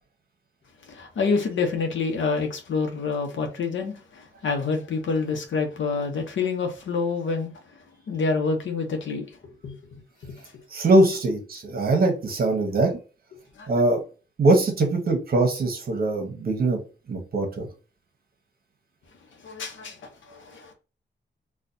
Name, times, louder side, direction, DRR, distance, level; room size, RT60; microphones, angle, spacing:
voice 1, 0.9-7.5 8.1-9.3 9.6-10.4 13.6-13.7 19.4-20.0 20.3-20.7, left 4 dB, 85° left, 0.8 m, -27 dB
voice 2, 10.7-13.0 13.7-14.0 14.4-16.8 17.1-17.7, right 2 dB, 50° right, 1.1 m, -22 dB
4.1 x 2.3 x 2.6 m
wide cardioid pair, 170°, 19 cm